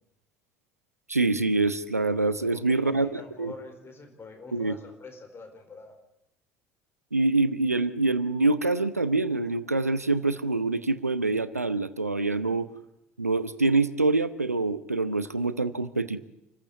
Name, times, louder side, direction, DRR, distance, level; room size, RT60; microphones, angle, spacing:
voice 1, 1.1-3.5 4.5-4.7 7.1-12.7 13.2-16.2, right 3 dB, 90° right, 15 dB, 0.8 m, -25 dB
voice 2, 2.4-6.0, left 3 dB, 30° left, 6 dB, 4.4 m, -45 dB
27.5 x 15.0 x 8.4 m, 0.85 s
figure-of-eight pair, 60°, 8 cm